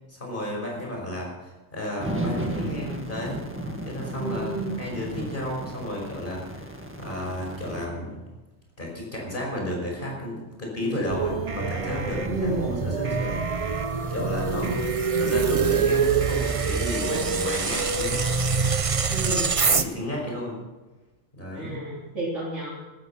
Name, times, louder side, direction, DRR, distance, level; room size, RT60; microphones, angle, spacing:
voice 1, 0.1-3.4 3.9-4.5 4.8-6.7 7.0-8.2 8.8-13.7 14.1-14.8 15.1-18.2 19.7-20.6 21.3-21.8, left 1 dB, 40° left, -1 dB, 5.6 m, -32 dB
sound 1, 2.0-7.9, right 1 dB, 10° right, 1.8 m, -34 dB
voice 2, 4.2-4.7 12.3-12.6 19.1-19.6 21.5-22.7, right 2 dB, 65° right, -8 dB, 3.8 m, -31 dB
sound 2, 11.1-19.8, right 5 dB, 35° right, 0.6 m, -25 dB
14.5 x 13.5 x 5.7 m, 1.1 s
omnidirectional pair, 1.3 m